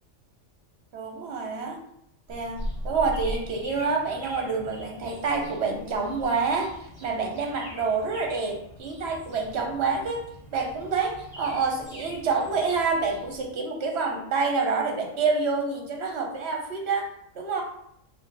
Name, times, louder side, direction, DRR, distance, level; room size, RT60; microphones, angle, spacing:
voice 1, 0.9-1.8 2.3-10.2 10.5-17.6, right 4 dB, 60° right, 1 dB, 1.1 m, -27 dB
sound 1, 2.3-13.4, left 1 dB, 25° right, 1.8 m, -41 dB
4.3 x 2.3 x 4.6 m, 0.73 s
omnidirectional pair, 1.3 m